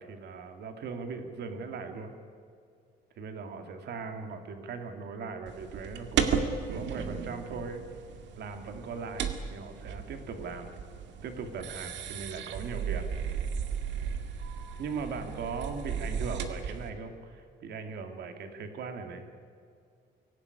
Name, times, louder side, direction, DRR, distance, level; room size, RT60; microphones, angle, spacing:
voice 1, 0.0-2.1 3.2-7.9 8.4-10.7 11.2-13.1 14.8-19.3, right 5 dB, 65° right, 6 dB, 2.5 m, -39 dB
sound 1, 5.5-16.9, right 7 dB, 85° right, 2.1 m, -35 dB
24.0 x 17.0 x 9.7 m, 2.3 s
cardioid pair, 165°, 18 cm